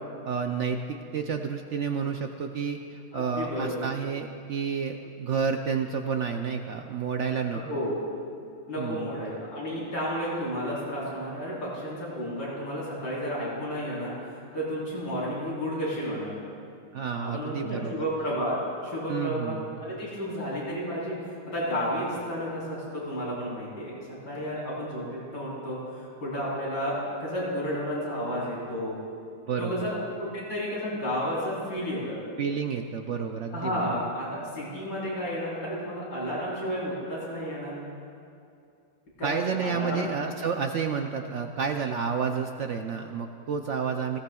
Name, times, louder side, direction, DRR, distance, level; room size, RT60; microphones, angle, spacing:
voice 1, 0.3-7.6 8.8-9.1 16.9-18.0 19.1-19.8 29.5-29.9 32.4-33.8 39.2-44.2, right 6 dB, 65° right, 5 dB, 0.7 m, -30 dB
voice 2, 3.1-3.8 7.5-8.1 8.7-14.1 14.5-16.3 17.2-29.0 29.6-32.2 33.5-37.7 39.2-40.1, equal, 85° left, -7 dB, 4.6 m, -32 dB
19.0 x 17.0 x 2.3 m, 2.5 s
omnidirectional pair, 1.8 m